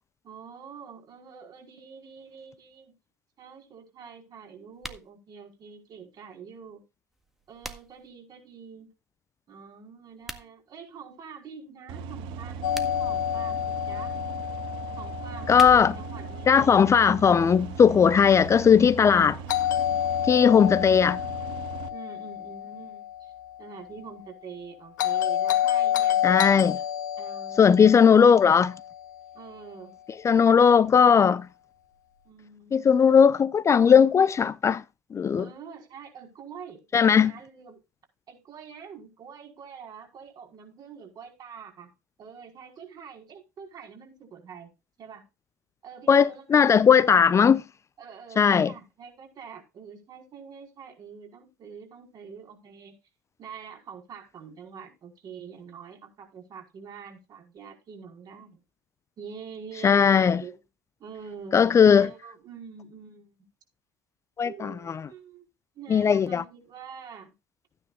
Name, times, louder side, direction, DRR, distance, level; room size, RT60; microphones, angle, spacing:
voice 1, 0.2-2.9 3.4-6.8 7.5-8.9 9.5-14.1 14.9-17.1 21.9-23.3 23.6-26.2 27.2-28.1 29.3-30.0 32.2-32.9 35.4-37.8 38.3-41.9 42.2-44.7 45.0-45.2 45.8-47.3 48.0-52.9 53.4-58.6 59.2-60.6 61.0-61.6 61.9-63.4 64.4-65.5 65.7-67.3, right 6 dB, 45° right, 5.0 m, -45 dB
sound 1, 4.7-5.1 7.1-8.1 10.1-10.5 12.5-13.2 15.2-16.1, right 1 dB, 5° right, 1.7 m, -42 dB
sound 2, 11.9-21.9, right 5 dB, 60° right, 1.7 m, -39 dB
Doorbell, 12.6-16.6 19.5-23.7 25.0-29.4, left 11 dB, 75° left, 2.1 m, -29 dB
voice 2, 15.5-15.9 16.5-19.4 20.2-21.2 26.2-26.8 27.6-28.7 30.2-31.4 32.7-34.8 35.1-35.5 36.9-37.3 46.1-47.6 48.4-48.7 59.8-60.4 61.5-62.1 64.4-65.1 65.9-66.4, left 7 dB, 30° left, 0.7 m, -18 dB
15.0 x 9.7 x 2.5 m
hypercardioid pair, 65°, 10 cm